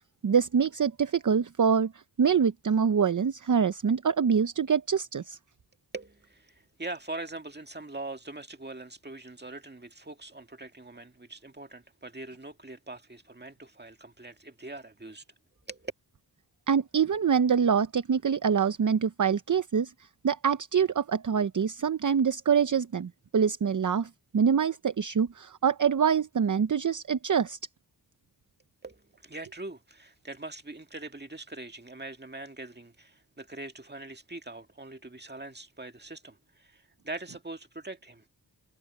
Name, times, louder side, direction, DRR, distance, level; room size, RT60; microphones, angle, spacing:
voice 1, 0.2-1.9 2.2-5.4 16.7-19.9 20.2-27.6, right 7 dB, 50° right, 0.8 m, -25 dB
voice 2, 5.9-15.2 15.7-15.9 28.8-38.2, right 2 dB, 25° right, 2.0 m, -42 dB
cardioid pair, 40°, 39 cm